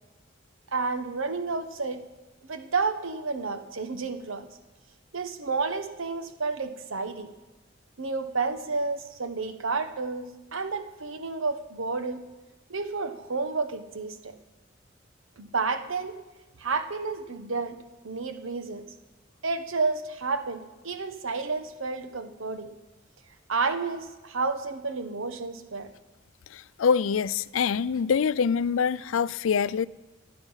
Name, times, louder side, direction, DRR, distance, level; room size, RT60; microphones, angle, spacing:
voice 1, 0.7-2.0 2.4-4.4 5.1-7.3 8.0-12.2 12.7-14.3 15.4-16.1 16.6-17.8 18.0-18.8 19.4-22.7 23.5-25.9, right 4 dB, 85° right, 1.2 m, -30 dB
voice 2, 26.8-29.9, left 6 dB, 85° left, 0.4 m, -24 dB
27.0 x 9.3 x 5.7 m
head